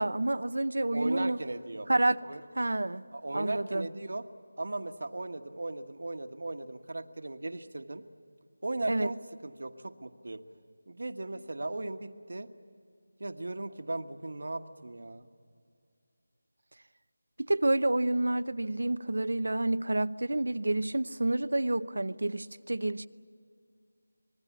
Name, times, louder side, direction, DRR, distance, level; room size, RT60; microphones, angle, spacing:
voice 1, 0.0-1.4 1.9-2.2 2.6-3.0 3.3-3.9 8.9-9.1 17.4-23.1, right 2 dB, 85° right, 12 dB, 0.8 m, -29 dB
voice 2, 0.9-1.9 2.2-2.4 3.1-4.2 4.6-8.0 8.6-10.4 10.9-12.5 13.2-15.3, right 2 dB, 65° right, 8 dB, 1.3 m, -37 dB
26.0 x 20.5 x 8.5 m, 2.2 s
figure-of-eight pair, 175°, 0 cm